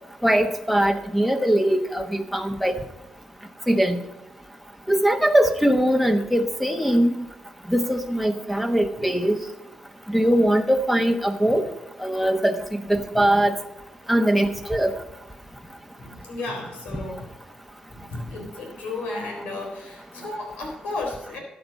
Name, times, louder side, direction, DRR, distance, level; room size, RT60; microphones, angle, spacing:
voice 1, 0.2-2.8 3.7-4.0 4.9-7.1 7.7-9.4 10.1-11.6 12.0-13.5 14.1-14.9, right 1 dB, ahead, 6 dB, 1.1 m, -21 dB
voice 2, 16.0-17.3 17.9-21.4, left 2 dB, 90° left, 1 dB, 3.8 m, -34 dB
13.0 x 7.8 x 5.4 m, 1.0 s
cardioid pair, 90°, 2 cm